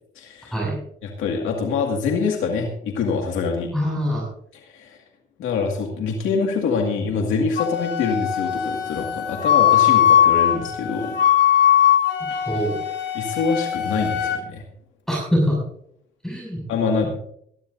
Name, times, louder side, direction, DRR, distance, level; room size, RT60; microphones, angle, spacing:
voice 1, 0.2-0.6 1.0-3.7 4.5-5.0 5.4-11.2 12.3-12.4 13.1-14.6 16.7-17.1, left 5 dB, 85° left, 1 dB, 2.1 m, -25 dB
voice 2, 3.7-4.3 12.4-12.8 15.1-15.6 16.2-16.6, equal, ahead, -3 dB, 6.6 m, -23 dB
Wind instrument woodwind instrument, 7.6-14.4, left 10 dB, 65° left, 3.4 m, -20 dB
19.5 x 12.5 x 2.7 m, 0.68 s
cardioid pair, 90°, 20 cm